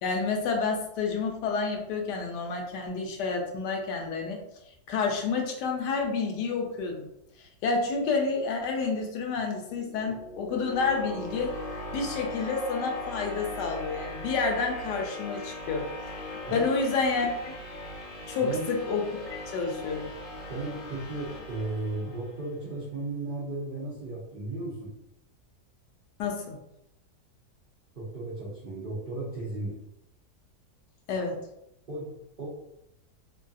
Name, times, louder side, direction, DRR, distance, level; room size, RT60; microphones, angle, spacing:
voice 1, 0.0-4.4 4.9-7.1 7.4-11.5 11.9-15.9 16.2-17.5 18.3-20.1 26.2-26.6 31.1-31.4, left 4 dB, 85° left, 1 dB, 1.2 m, -29 dB
sound 1, 9.6-22.5, left 1 dB, 65° left, 1.0 m, -40 dB
voice 2, 18.4-18.7 20.5-24.9 27.9-29.8 31.9-32.1 32.4-32.5, right 2 dB, 70° right, -7 dB, 0.5 m, -35 dB
3.0 x 2.5 x 2.3 m, 0.82 s
omnidirectional pair, 1.8 m